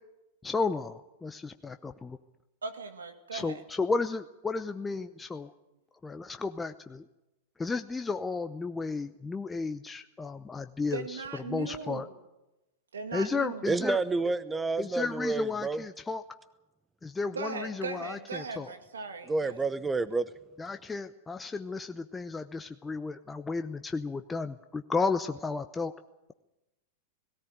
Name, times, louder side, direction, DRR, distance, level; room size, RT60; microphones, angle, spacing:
voice 1, 0.4-2.2 3.3-5.5 6.0-7.1 7.6-12.1 13.1-14.0 14.8-16.2 17.0-18.7 20.6-25.9, left 4 dB, 15° left, 8 dB, 0.8 m, -33 dB
voice 2, 2.6-3.6 10.9-12.1 12.9-13.6 17.3-19.6, right 5 dB, 85° right, 6 dB, 2.3 m, -38 dB
voice 3, 13.7-15.8 19.3-20.3, right 3 dB, 15° right, 15 dB, 0.9 m, -29 dB
17.5 x 17.0 x 9.2 m, 0.97 s
hypercardioid pair, 100°, 0 cm